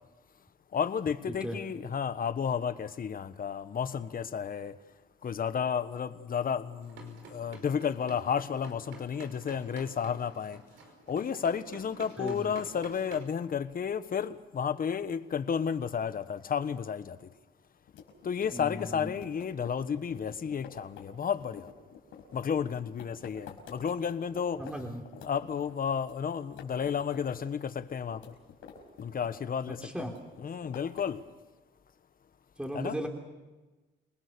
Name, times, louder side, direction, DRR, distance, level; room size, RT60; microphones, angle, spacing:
voice 1, 0.7-4.7 5.2-10.6 11.1-17.2 18.2-21.7 22.3-24.6 25.2-28.2 29.0-29.8 30.4-31.2 32.7-33.0, left 7 dB, 45° left, 1.4 m, -32 dB
voice 2, 1.3-1.6 12.2-12.5 18.5-19.1 24.6-25.0 29.7-30.1 32.6-33.1, equal, 5° right, 3.6 m, -37 dB
sound 1, 6.8-13.2, right 4 dB, 85° right, 5.2 m, -50 dB
sound 2, 17.9-24.7 25.1-26.2 26.4-27.4 27.6-29.5 29.8-31.2, left 8 dB, 90° left, 5.4 m, -49 dB
29.0 x 20.0 x 6.9 m
cardioid pair, 90°, 20 cm